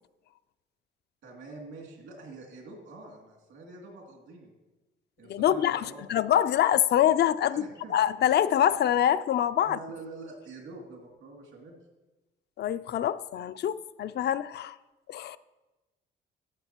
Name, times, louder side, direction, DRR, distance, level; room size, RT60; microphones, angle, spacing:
voice 1, 1.2-4.5 5.2-6.1 7.5-7.9 9.6-11.8, right 3 dB, 75° right, 2.6 m, -45 dB
voice 2, 5.3-7.6 7.9-9.8 12.6-14.8 15.1-15.4, left 10 dB, 60° left, 0.4 m, -25 dB
13.5 x 7.2 x 2.9 m
cardioid pair, 90°, 20 cm